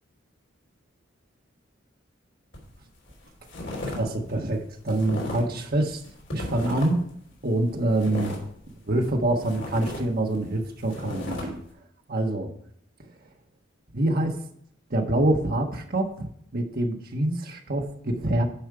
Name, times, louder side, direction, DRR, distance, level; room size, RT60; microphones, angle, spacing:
sound 1, 2.5-2.8 3.1-4.0 4.3-5.6 5.9-7.1 7.5-9.1 9.4-11.4, left 1 dB, 65° left, 3.1 m, -35 dB
voice 1, 4.0-6.0 6.3-7.0 7.4-8.4 8.8-11.6 12.1-12.5 13.9-14.4 14.9-18.4, right 1 dB, 50° right, 3 dB, 1.4 m, -25 dB
10.5 x 5.4 x 4.9 m, 0.68 s
head